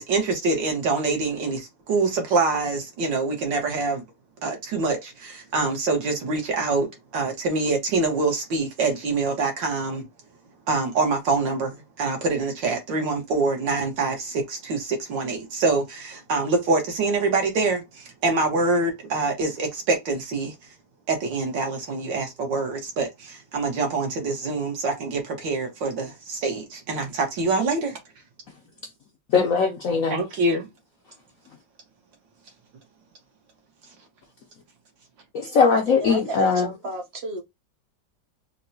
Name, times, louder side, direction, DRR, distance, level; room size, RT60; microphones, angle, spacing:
voice 1, 0.0-4.0 4.4-10.1 10.7-20.6 21.1-28.0 30.1-30.7, right 3 dB, 75° right, 1.8 m, -25 dB
voice 2, 29.3-30.2 35.3-36.7, left 5 dB, 70° left, 0.8 m, -20 dB
voice 3, 35.9-37.4, right 2 dB, 50° right, 0.8 m, -33 dB
4.4 x 2.1 x 2.7 m
omnidirectional pair, 2.0 m